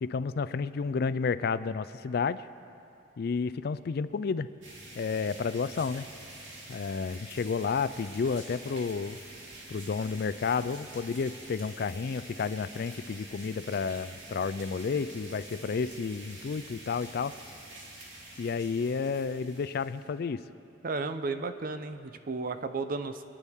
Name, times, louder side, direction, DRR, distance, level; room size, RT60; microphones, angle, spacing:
voice 1, 0.0-2.5 3.2-4.5 5.0-6.1 6.7-9.2 9.7-17.3 18.4-20.4, left 5 dB, 55° left, 14 dB, 0.4 m, -31 dB
sound 1, 4.6-20.1, right 1 dB, 75° right, 2.7 m, -47 dB
voice 2, 20.8-23.2, right 3 dB, 50° right, 10 dB, 0.6 m, -33 dB
25.0 x 10.0 x 3.6 m, 2.7 s
head